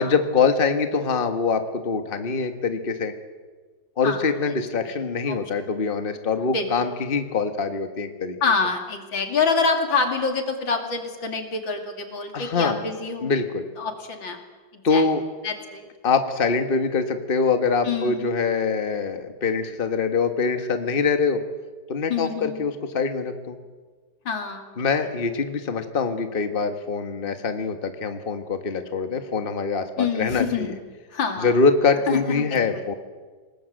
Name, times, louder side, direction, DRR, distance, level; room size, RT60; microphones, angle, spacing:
voice 1, 0.0-3.1 4.0-8.4 12.3-12.8 13.2-13.7 14.8-15.2 16.0-21.4 21.9-23.6 24.8-30.7 31.4-32.9, left 4 dB, 30° left, 7 dB, 1.6 m, -24 dB
voice 2, 8.4-13.3 13.8-14.4 14.7-15.1 15.4-15.8 17.8-18.4 22.1-22.6 24.2-24.8 30.0-30.7 31.1-31.5 32.1-32.8, left 5 dB, 90° left, 5 dB, 3.4 m, -26 dB
28.0 x 19.5 x 7.8 m, 1.4 s
omnidirectional pair, 2.0 m